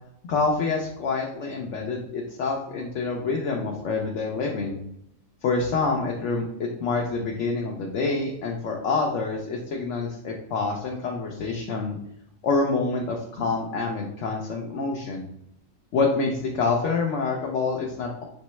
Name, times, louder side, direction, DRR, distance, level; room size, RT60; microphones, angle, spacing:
voice 1, 0.2-4.8 5.4-12.0 12.4-15.3 15.9-18.2, left 4 dB, 65° left, 0 dB, 0.9 m, -27 dB
5.3 x 3.1 x 3.0 m, 0.77 s
omnidirectional pair, 1.4 m